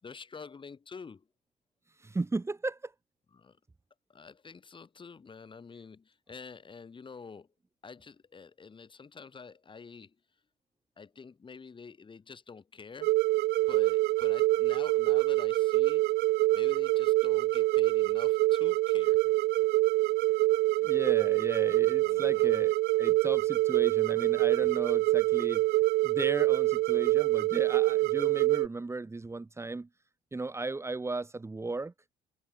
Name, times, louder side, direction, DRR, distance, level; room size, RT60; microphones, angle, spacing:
voice 1, 0.0-1.3 3.3-3.6 4.1-7.5 7.8-10.2 11.0-13.1 13.7-16.1 16.5-19.3 21.9-22.5, left 5 dB, 30° left, 7.4 m, -48 dB
voice 2, 2.0-2.9 20.8-25.6 26.0-29.9 30.3-31.9, right 3 dB, 15° right, 2.3 m, -35 dB
sound 1, 13.0-28.7, right 18 dB, 70° right, 0.4 m, -25 dB
cardioid pair, 110°, 17 cm